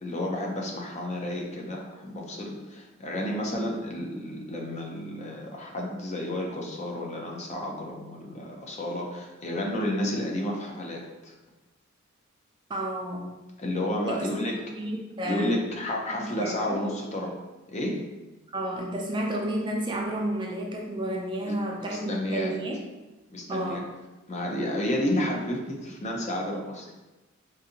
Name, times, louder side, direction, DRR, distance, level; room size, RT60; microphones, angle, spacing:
voice 1, 0.0-11.3 13.6-14.6 15.3-17.3 17.7-18.0 21.4-22.6 23.3-23.8 24.3-26.9, left 1 dB, 35° left, 0 dB, 0.5 m, -31 dB
voice 2, 12.7-13.4 14.1-14.4 14.8-15.6 16.1-16.8 18.5-22.8 23.5-23.8, right 1 dB, 25° right, -1 dB, 0.4 m, -31 dB
3.9 x 2.6 x 2.7 m, 1.1 s
head